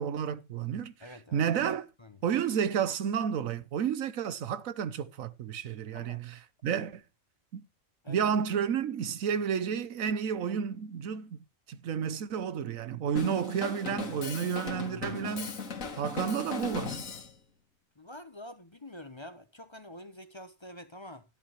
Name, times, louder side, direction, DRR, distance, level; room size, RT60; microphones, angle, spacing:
voice 1, 0.0-0.9 1.3-1.9 2.2-7.0 7.5-7.6 8.1-11.4 11.7-15.6 16.0-17.0, right 7 dB, 85° right, 1.3 m, -31 dB
voice 2, 1.0-1.7 2.0-2.2 5.9-6.2 8.0-8.4 18.0-21.2, left 1 dB, 25° left, 0.8 m, -47 dB
Drum kit, 13.2-17.3, left 4 dB, 80° left, 1.9 m, -38 dB
13.0 x 8.6 x 3.1 m
omnidirectional pair, 1.4 m